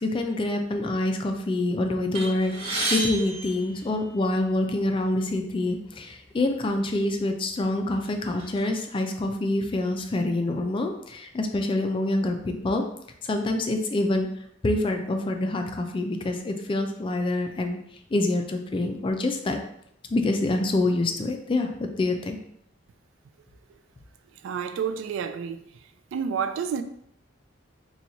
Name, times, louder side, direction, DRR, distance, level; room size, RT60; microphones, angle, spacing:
voice 1, 0.0-12.8 13.2-14.3 14.6-17.8 18.1-19.6 20.1-22.4, left 2 dB, 25° left, 0.3 m, -26 dB
sound 1, 2.1-4.5 5.3-5.4 5.8-5.9 6.8-7.0 7.4-8.6, right 1 dB, 30° right, 1.4 m, -32 dB
voice 2, 24.4-25.6 26.1-26.8, right 7 dB, 75° right, 0.3 m, -29 dB
2.9 x 2.3 x 3.9 m
head